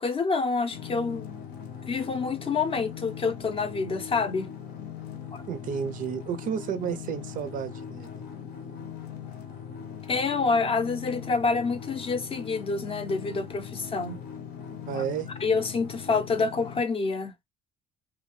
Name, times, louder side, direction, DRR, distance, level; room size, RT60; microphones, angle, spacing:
voice 1, 0.0-1.5 1.9-4.5 5.3-5.4 10.1-14.2 14.9-15.0 15.4-17.4, left 4 dB, 35° left, 0.5 m, -27 dB
sound 1, 0.7-16.8, left 8 dB, 80° left, 0.8 m, -40 dB
voice 2, 5.5-8.2 14.9-15.3, right 7 dB, 55° right, 0.4 m, -32 dB
2.7 x 2.2 x 3.0 m
cardioid pair, 110°, 17 cm